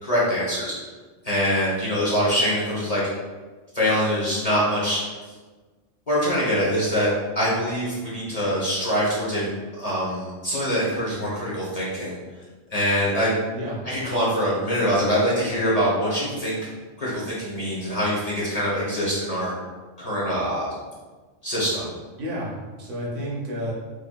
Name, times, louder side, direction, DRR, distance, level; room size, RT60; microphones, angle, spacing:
voice 1, 0.0-0.7 1.2-3.0 3.7-5.2 6.1-12.2 12.7-13.4 13.8-16.6 17.0-19.5 20.0-20.7 21.4-21.9, equal, 35° left, -7 dB, 0.9 m, -24 dB
voice 2, 22.2-23.7, equal, 75° right, -4 dB, 1.3 m, -31 dB
4.7 x 2.9 x 2.3 m, 1.3 s
omnidirectional pair, 1.3 m